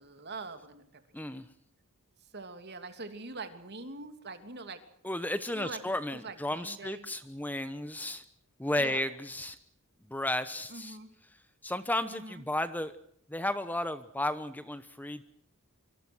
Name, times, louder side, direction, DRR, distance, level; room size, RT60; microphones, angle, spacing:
voice 1, 0.0-1.4 2.3-4.8 5.5-5.8 6.2-7.1 8.8-9.1 10.7-11.1 12.1-12.4, right 3 dB, 50° right, 8 dB, 3.0 m, -44 dB
voice 2, 1.1-1.4 5.0-8.2 8.6-9.6 10.1-11.0 11.6-12.9 13.3-15.2, left 1 dB, 10° left, 12 dB, 1.0 m, -33 dB
25.5 x 25.0 x 6.3 m, 0.65 s
head